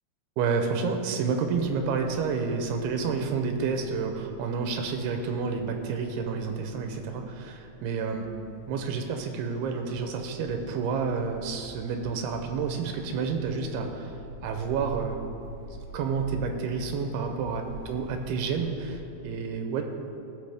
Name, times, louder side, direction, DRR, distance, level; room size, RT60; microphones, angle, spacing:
voice 1, 0.4-8.2 8.7-14.1 14.4-15.2 15.9-19.8, right 5 dB, 85° right, 4 dB, 2.6 m, -29 dB
sound 1, 8.4-19.0, equal, 75° left, 2.8 m, -46 dB
17.0 x 6.1 x 3.4 m, 2.9 s
omnidirectional pair, 4.6 m